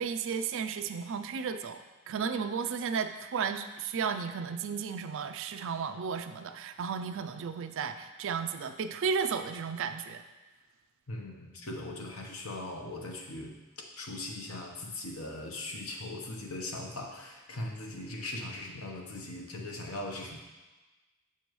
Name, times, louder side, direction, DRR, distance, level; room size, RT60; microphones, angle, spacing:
voice 1, 0.0-1.8 2.1-10.2, right 6 dB, 60° right, 9 dB, 0.4 m, -33 dB
voice 2, 11.1-13.6 14.0-20.4, left 2 dB, 70° left, 1 dB, 1.0 m, -39 dB
6.9 x 5.9 x 3.1 m, 1.2 s
head